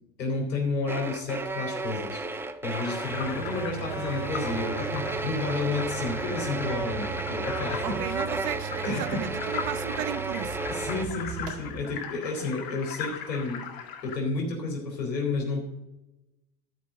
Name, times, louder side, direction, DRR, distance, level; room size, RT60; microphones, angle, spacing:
voice 1, 0.2-2.2 2.6-8.2 8.8-9.6 10.7-13.6 14.0-15.6, left 3 dB, 80° left, 0 dB, 3.4 m, -31 dB
sound 1, 0.9-11.1, right 3 dB, 5° right, 0.4 m, -33 dB
sound 2, 2.7-14.2, left 7 dB, 45° left, 1.9 m, -40 dB
sound 3, 3.1-12.0, right 10 dB, 70° right, 2.2 m, -39 dB
voice 2, 7.8-10.6 12.4-12.5, right 12 dB, 45° right, 13 dB, 1.1 m, -35 dB
13.5 x 5.1 x 7.2 m, 0.94 s
hypercardioid pair, 90°, 50 cm